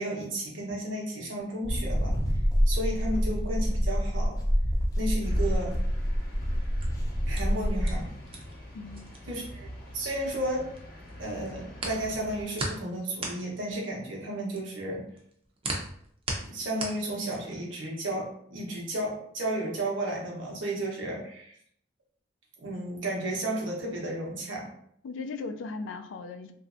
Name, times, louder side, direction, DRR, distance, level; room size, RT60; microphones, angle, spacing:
voice 1, 0.0-2.1 2.7-4.4 5.0-5.8 7.3-8.1 9.3-9.7 9.9-10.6 11.2-15.0 16.5-21.5 22.6-24.7, right 1 dB, 90° right, -2 dB, 1.0 m, -33 dB
sound 1, 1.6-8.1, equal, 20° left, 0.6 m, -27 dB
sound 2, 5.2-12.4, left 1 dB, 50° left, 0.8 m, -46 dB
sound 3, 6.6-10.8 11.1-17.7, right 2 dB, 30° right, 0.5 m, -38 dB
voice 2, 8.7-9.1 25.0-26.5, left 4 dB, 90° left, 8 dB, 0.3 m, -37 dB
3.1 x 2.6 x 2.5 m, 0.67 s
head